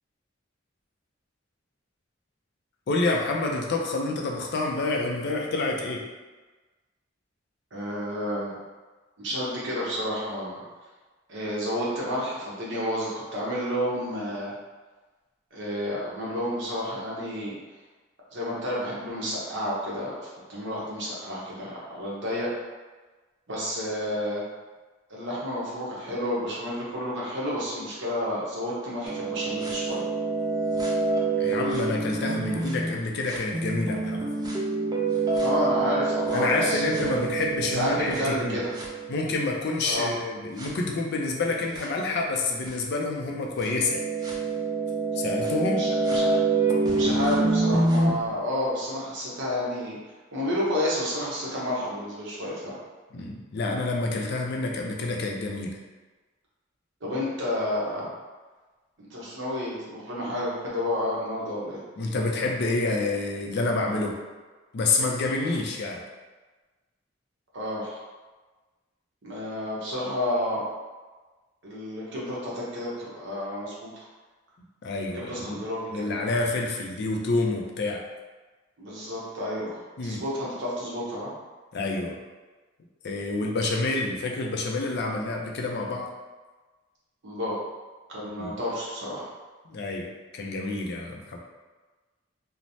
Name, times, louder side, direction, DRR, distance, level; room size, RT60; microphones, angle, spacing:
voice 1, 2.9-6.0 31.4-34.3 36.3-38.6 39.1-44.3 45.2-45.9 53.1-55.8 62.0-64.2 64.7-66.0 74.8-75.7 75.9-78.0 80.0-80.2 81.7-82.2 83.0-86.1 88.3-88.5 89.7-91.4, left 2 dB, 55° left, 0 dB, 0.4 m, -28 dB
voice 2, 7.7-8.6 9.2-10.6 11.3-14.5 15.5-17.5 18.3-22.5 23.5-24.4 25.1-30.0 35.4-37.2 37.7-38.7 39.8-40.1 45.8-46.3 46.9-50.0 50.3-52.8 57.0-58.1 59.0-61.8 67.5-68.0 69.2-70.6 71.6-74.0 75.1-76.1 78.8-81.3 87.2-87.6 88.1-89.2, left 1 dB, 65° right, -6 dB, 0.8 m, -30 dB
sound 1, 29.1-32.9 33.3-39.4 39.9-40.0 40.6-40.7 41.7-41.8 42.7-42.8 43.6-48.1, right 3 dB, 20° right, 0.3 m, -26 dB
3.1 x 2.0 x 2.7 m, 1.3 s
head